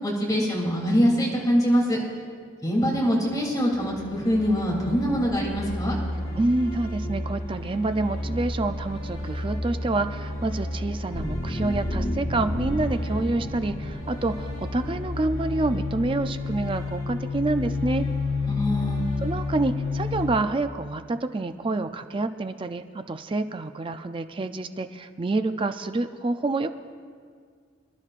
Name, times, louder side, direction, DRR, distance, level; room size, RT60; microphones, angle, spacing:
voice 1, 0.0-2.0 2.6-6.0 18.5-19.0, equal, 20° left, -4 dB, 3.0 m, -23 dB
sound 1, 3.7-20.2, left 2 dB, 75° left, 2.9 m, -31 dB
voice 2, 6.4-18.1 19.2-26.7, right 2 dB, 25° right, 9 dB, 0.4 m, -27 dB
sound 2, 11.1-15.9, equal, 35° left, 0.7 m, -33 dB
26.0 x 11.5 x 2.5 m, 2.1 s
head